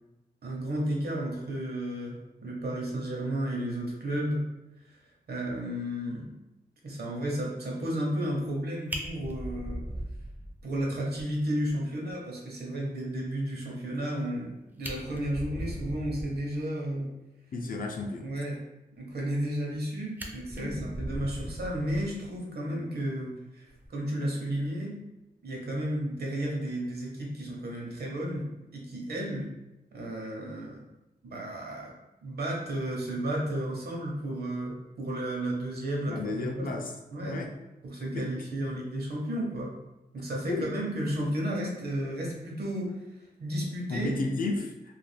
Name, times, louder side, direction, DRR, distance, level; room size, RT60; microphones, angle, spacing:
voice 1, 0.4-4.4 4.9-5.0 5.3-6.3 6.8-9.8 10.6-17.1 18.2-18.6 19.0-24.9 25.4-29.5 29.9-30.8 31.2-31.9 32.2-36.7 37.1-37.4 37.8-39.7 40.1-42.9 43.4-44.1, right 1 dB, 70° right, -2 dB, 0.8 m, -33 dB
Fire, 8.5-8.6 8.9-10.8 11.2-11.3 11.7-11.8 12.1-12.2 14.3-14.4 14.7-16.5 19.3-19.8 20.2-22.4 23.7-23.9, right 1 dB, 10° right, 0.3 m, -38 dB
voice 2, 17.5-18.3 20.6-20.9 36.1-36.9 37.2-37.5 38.1-38.3 40.5-40.7 43.9-45.0, left 3 dB, 60° left, 2 dB, 0.4 m, -33 dB
2.4 x 2.2 x 3.3 m, 0.99 s
wide cardioid pair, 135°, 17 cm